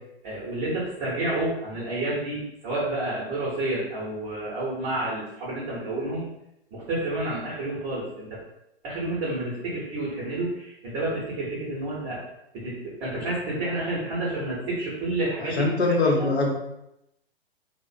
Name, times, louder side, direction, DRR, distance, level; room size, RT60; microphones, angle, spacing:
voice 1, 0.2-6.2 6.7-8.4 8.8-12.2 12.5-15.7 16.0-16.3, right 2 dB, 25° right, -7 dB, 0.7 m, -30 dB
voice 2, 15.4-16.5, left 2 dB, 80° left, 0 dB, 0.8 m, -22 dB
2.4 x 2.1 x 2.6 m, 0.84 s
hypercardioid pair, 120°, 32 cm